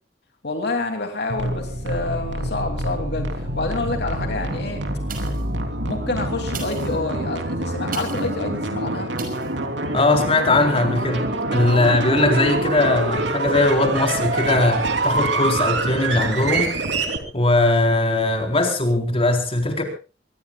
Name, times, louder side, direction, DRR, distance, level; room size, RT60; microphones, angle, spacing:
voice 1, 0.4-4.8 5.8-9.1, left 2 dB, 65° left, 2.9 m, -28 dB
sound 1, 1.3-17.2, right 2 dB, 80° right, 3.3 m, -26 dB
sound 2, 5.1-5.6 6.4-8.4 9.2-9.5 10.1-10.2, right 6 dB, 55° right, 5.7 m, -38 dB
voice 2, 9.9-16.8 17.3-19.8, left 2 dB, 35° left, 4.2 m, -20 dB
25.0 x 20.5 x 2.4 m
head